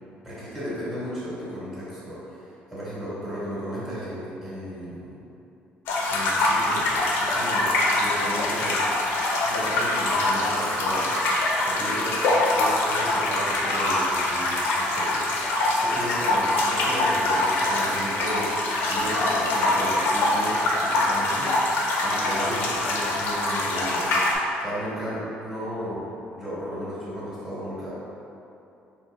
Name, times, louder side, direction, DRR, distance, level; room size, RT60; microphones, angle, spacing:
voice 1, 0.2-5.2 6.1-6.9 7.2-8.8 9.4-11.1 11.6-12.2 12.5-21.6 22.0-24.1 24.6-27.9, equal, 10° right, -12 dB, 1.5 m, -34 dB
sound 1, 5.9-24.3, left 2 dB, 75° left, 0.7 m, -24 dB
4.2 x 3.1 x 3.4 m, 2.8 s
cardioid pair, 135°, 4 cm